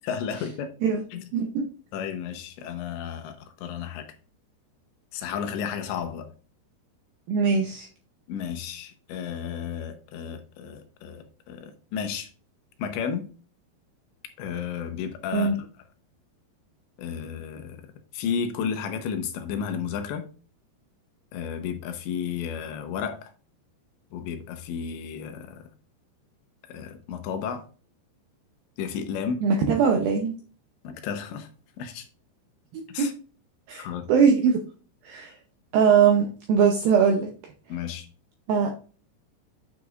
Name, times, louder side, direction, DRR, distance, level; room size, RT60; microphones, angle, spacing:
voice 1, 0.0-0.7 1.1-1.3 1.9-4.1 5.1-6.3 8.3-12.3 12.8-13.3 14.4-15.6 17.0-17.8 18.1-20.3 21.3-23.3 24.1-25.6 26.7-27.7 28.8-29.4 30.8-31.5 31.8-32.1 32.9-33.1 33.8-34.1 37.7-38.1, left 7 dB, 80° left, 7 dB, 3.1 m, -32 dB
voice 2, 1.3-1.6 7.3-7.9 15.3-15.5 29.4-30.3 32.7-33.1 33.7-34.6 35.0-35.4 35.7-37.3 38.5-38.7, right 6 dB, 80° right, 2 dB, 2.1 m, -21 dB
9.3 x 6.7 x 2.5 m, 0.37 s
omnidirectional pair, 5.3 m